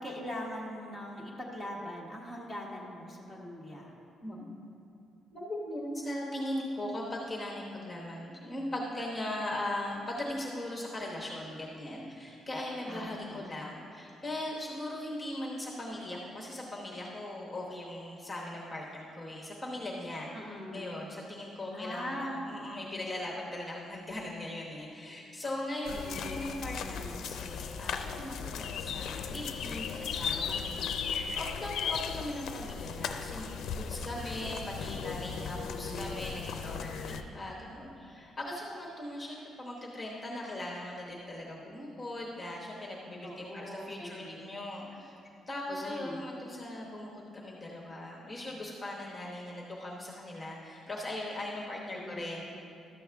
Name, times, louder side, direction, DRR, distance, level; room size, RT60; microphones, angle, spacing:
voice 1, 0.0-3.9 12.9-13.6 20.3-21.0 21.7-22.4 25.9-27.3 35.7-36.3 43.2-44.5 45.7-46.2 51.9-52.4, equal, 10° right, -3 dB, 1.2 m, -42 dB
voice 2, 4.2-4.8 5.3-45.2 45.5-52.4, left 1 dB, 10° left, -4 dB, 1.0 m, -39 dB
sound 1, 25.9-37.2, left 6 dB, 65° left, 0.4 m, -37 dB
12.5 x 7.0 x 3.5 m, 2.5 s
cardioid pair, 170°, 0 cm